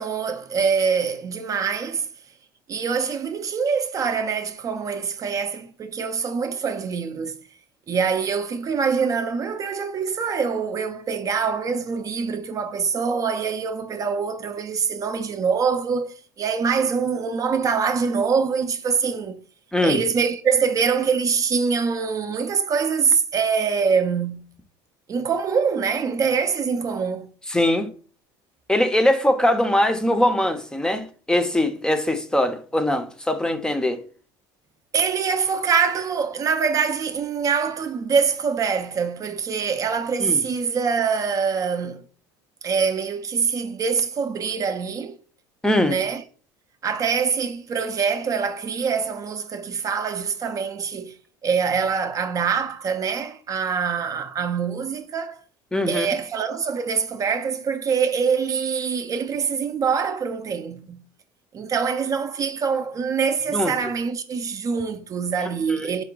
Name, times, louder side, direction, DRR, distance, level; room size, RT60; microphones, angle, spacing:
voice 1, 0.0-2.1 2.7-7.4 7.9-19.4 19.8-24.5 25.1-27.3 34.9-42.0 42.6-45.2 45.8-46.2 46.8-51.2 51.4-55.4 55.9-61.0 61.5-66.0, right 6 dB, 35° right, 0.5 m, -24 dB
voice 2, 27.5-27.9 28.7-34.0 40.2-40.4 45.6-46.0 55.7-56.1 63.5-63.7 65.7-65.9, left 1 dB, 5° left, 0.6 m, -21 dB
4.7 x 2.2 x 3.8 m
supercardioid pair, 95°, 10 cm